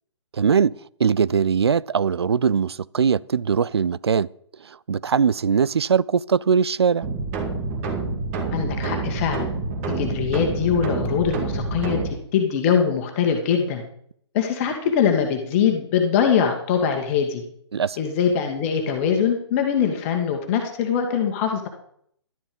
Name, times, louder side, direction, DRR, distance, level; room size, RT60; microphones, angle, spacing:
voice 1, 0.3-0.7 1.0-4.3 4.6-7.1 17.7-18.0, right 6 dB, 60° right, 0.5 m, -21 dB
sound 1, 7.0-12.1, right 3 dB, 30° right, 2.3 m, -27 dB
voice 2, 8.5-9.5 9.8-12.0 12.3-13.8 14.3-17.4 18.0-21.7, left 7 dB, 30° left, 1.9 m, -22 dB
12.5 x 10.5 x 5.3 m
figure-of-eight pair, 130°, 15 cm